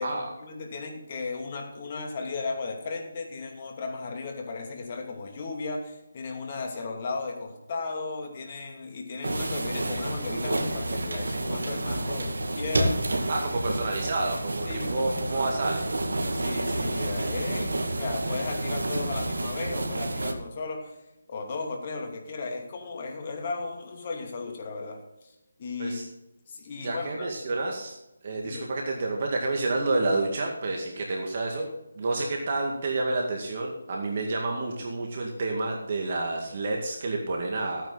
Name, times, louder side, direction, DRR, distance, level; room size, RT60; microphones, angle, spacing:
voice 1, 0.0-13.1 14.6-15.5 16.3-21.0 21.3-25.3 25.6-26.0 26.5-27.3 28.4-28.8, left 3 dB, 35° left, 2 dB, 2.5 m, -35 dB
sound 1, 9.2-20.3, right 1 dB, 70° right, 2.1 m, -29 dB
voice 2, 13.3-15.9 25.8-26.1 26.8-28.0 28.2-31.7 32.0-37.9, right 2 dB, 40° right, 1 dB, 2.1 m, -29 dB
15.0 x 9.2 x 4.1 m, 0.92 s
figure-of-eight pair, 165°, 0 cm